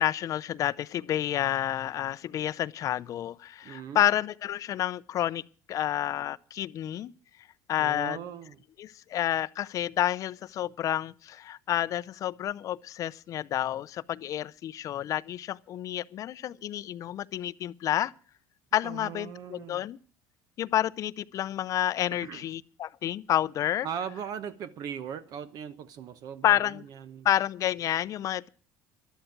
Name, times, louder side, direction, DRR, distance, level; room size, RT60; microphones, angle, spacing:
voice 1, 0.0-5.4 5.7-7.1 7.7-8.2 8.8-18.1 18.7-20.0 20.6-23.9 26.4-26.8 27.2-28.5, left 12 dB, 45° left, 0.6 m, -29 dB
voice 2, 3.6-4.1 7.8-8.6 18.8-19.8 22.2-22.5 23.8-27.3, right 8 dB, 55° right, 1.0 m, -39 dB
13.0 x 12.5 x 5.9 m
cardioid pair, 125°, 8 cm